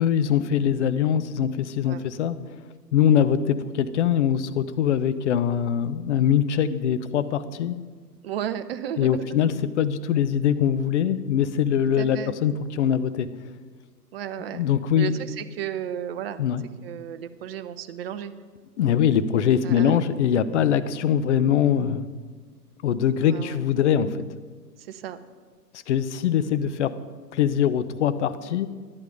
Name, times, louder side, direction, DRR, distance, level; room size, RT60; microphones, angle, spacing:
voice 1, 0.0-2.4 2.9-7.8 9.0-13.3 14.5-15.1 16.4-16.6 18.8-22.1 22.8-24.2 25.9-26.9 27.3-28.7, left 9 dB, 45° left, 12 dB, 0.8 m, -22 dB
voice 2, 8.2-9.4 12.0-12.4 14.1-14.6 14.9-16.4 16.8-18.3 19.6-20.0 23.2-23.6 24.8-25.2, right 9 dB, 40° right, 11 dB, 0.7 m, -33 dB
11.5 x 11.0 x 5.1 m, 1.4 s
hypercardioid pair, 125°, 50 cm